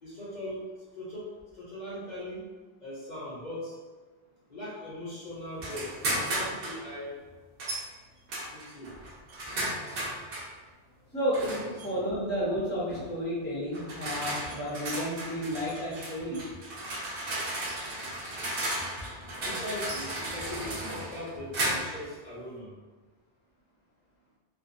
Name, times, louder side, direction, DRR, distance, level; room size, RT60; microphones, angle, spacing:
voice 1, 0.0-0.6 0.9-2.4 2.8-3.8 4.5-7.2 8.5-8.9 11.5-12.0 19.5-22.7, left 1 dB, 50° left, -8 dB, 0.8 m, -40 dB
sound 1, 5.6-6.8 7.6-7.9 8.3-10.5 11.3-11.9 12.9-13.1 13.7-22.1, right 1 dB, 65° right, 0.8 m, -34 dB
voice 2, 11.1-16.5, equal, 10° left, -8 dB, 0.6 m, -32 dB
2.5 x 2.3 x 2.5 m, 1.4 s
omnidirectional pair, 1.1 m